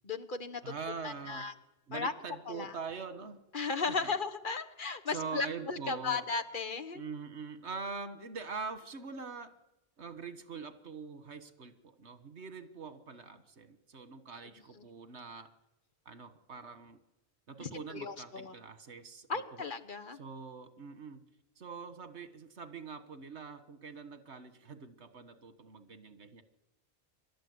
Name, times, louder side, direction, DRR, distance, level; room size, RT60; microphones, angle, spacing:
voice 1, 0.0-0.6 1.0-1.5 1.9-2.1 2.5-2.7 3.5-7.0 14.8-14.9 17.6-18.5 19.3-20.2, left 4 dB, 50° left, 7 dB, 1.3 m, -36 dB
voice 2, 0.6-1.5 1.9-3.4 3.9-4.1 5.1-6.3 6.9-9.5 10.0-15.5 16.1-17.0 17.5-19.7 20.1-21.2 21.6-26.4, right 5 dB, 85° right, 11 dB, 1.7 m, -44 dB
24.5 x 13.0 x 9.5 m, 0.95 s
omnidirectional pair, 1.1 m